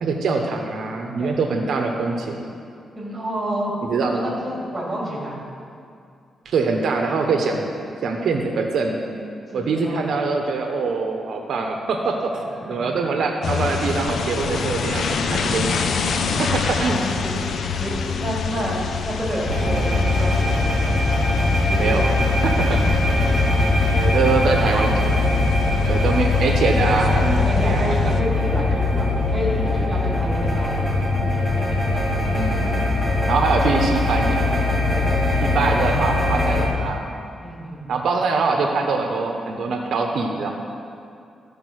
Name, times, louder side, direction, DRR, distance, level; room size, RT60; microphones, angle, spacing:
voice 1, 0.0-2.4 3.9-4.4 6.4-7.6 8.0-9.0 9.5-15.9 16.4-17.0 21.8-22.1 22.4-22.8 23.9-25.3 25.9-27.9 32.4-32.7 33.3-34.4 35.4-37.1 37.9-40.5, right 4 dB, 70° right, 3 dB, 0.9 m, -23 dB
voice 2, 2.9-3.7 4.0-5.4 7.5-7.6 9.5-10.1 12.5-12.9 16.4-17.3 17.8-20.9 21.4-22.1 23.0-23.6 27.3-30.9 34.9-35.1 37.4-38.0, right 1 dB, 20° right, -4 dB, 2.9 m, -30 dB
sound 1, 13.4-28.2, left 5 dB, 65° left, 0.6 m, -27 dB
sound 2, 19.4-36.7, left 2 dB, 15° left, 2.6 m, -21 dB
14.0 x 5.1 x 6.3 m, 2.5 s
wide cardioid pair, 130°, 0 cm